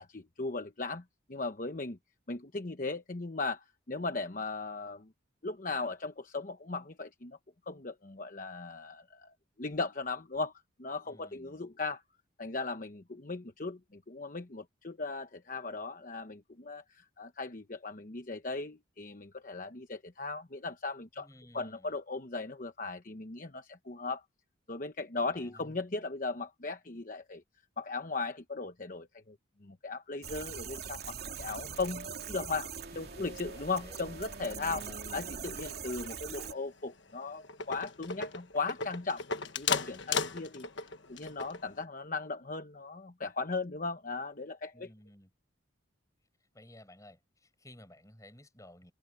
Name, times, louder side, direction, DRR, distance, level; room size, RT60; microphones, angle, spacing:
voice 1, 0.0-2.0 2.3-5.1 5.4-7.4 7.7-10.5 10.8-12.0 12.4-21.3 21.5-24.2 24.7-27.4 27.8-29.4 29.6-34.9 35.1-39.2 39.6-44.9, left 3 dB, 40° left, 1.0 m, -38 dB
voice 2, 11.0-11.7 21.2-22.0 25.2-25.8 33.2-34.0 34.8-35.5 44.7-45.3 46.5-48.9, left 1 dB, 15° left, 7.2 m, -55 dB
sound 1, 30.2-36.5, right 6 dB, 50° right, 2.9 m, -42 dB
sound 2, 35.4-36.1 36.4-36.7 37.1-37.2 37.4-41.8, left 5 dB, 65° left, 1.4 m, -36 dB
head